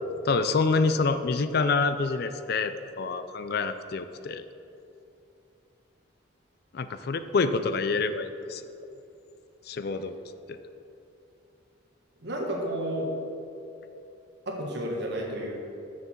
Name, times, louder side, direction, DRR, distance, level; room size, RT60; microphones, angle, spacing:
voice 1, 0.2-4.4 6.7-8.6 9.7-10.2 10.5-10.6, left 4 dB, 50° left, 11 dB, 0.4 m, -27 dB
voice 2, 12.2-13.1 14.5-15.5, right 1 dB, 55° right, -1 dB, 1.5 m, -31 dB
6.9 x 6.5 x 7.2 m, 2.7 s
head